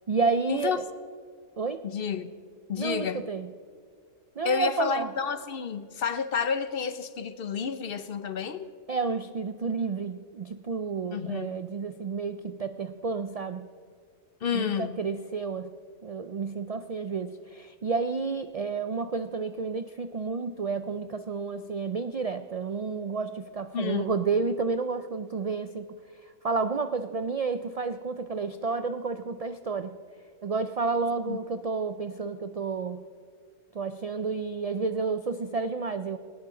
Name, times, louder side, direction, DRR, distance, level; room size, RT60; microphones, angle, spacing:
voice 1, 0.1-0.8 1.6-1.8 2.8-3.5 4.4-5.1 8.9-13.7 14.5-15.7 16.0-25.9 26.4-29.9 30.4-33.0 33.7-36.2, right 4 dB, 70° right, 10 dB, 0.3 m, -30 dB
voice 2, 1.8-2.3 2.7-3.3 4.4-8.7 11.1-11.6 14.4-15.0 23.7-24.2 31.3-31.4, left 6 dB, 55° left, 12 dB, 0.8 m, -30 dB
18.5 x 18.0 x 3.8 m, 2.1 s
omnidirectional pair, 1.3 m